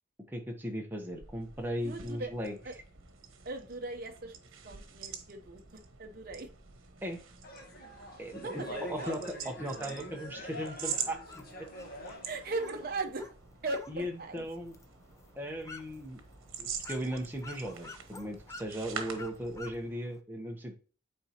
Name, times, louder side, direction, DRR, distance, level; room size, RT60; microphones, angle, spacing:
voice 1, 0.3-2.5 7.0-7.2 8.2-8.6 8.9-11.2 11.6-11.7 12.1-12.2 13.9-14.7 15.4-16.2 16.6-20.7, equal, 10° right, 1 dB, 1.0 m, -37 dB
sound 1, 1.0-19.9, right 7 dB, 90° right, 1.0 m, -45 dB
voice 2, 1.8-2.3 2.6-2.8 3.4-4.4 4.6-6.5 8.4-9.2 12.2-13.3 13.6-14.4, right 2 dB, 45° right, 4 dB, 0.8 m, -38 dB
sound 2, 7.4-12.9, equal, 50° left, 1.4 m, -44 dB
sound 3, 11.3-20.2, left 3 dB, 15° left, 0.4 m, -52 dB
8.8 x 3.9 x 2.9 m, 0.37 s
head